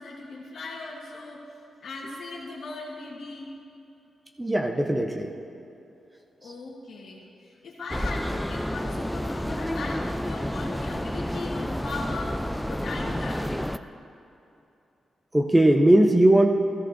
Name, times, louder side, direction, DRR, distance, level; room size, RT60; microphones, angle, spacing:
voice 1, 0.0-1.5 1.8-3.5 6.4-13.7, left 3 dB, 65° left, -4 dB, 1.4 m, -38 dB
voice 2, 4.4-5.3 15.3-16.5, right 1 dB, 15° right, 3 dB, 0.8 m, -19 dB
sound 1, 7.9-13.8, equal, 5° left, 0.4 m, -30 dB
13.5 x 13.5 x 2.6 m, 2.8 s
cardioid pair, 60°, 0 cm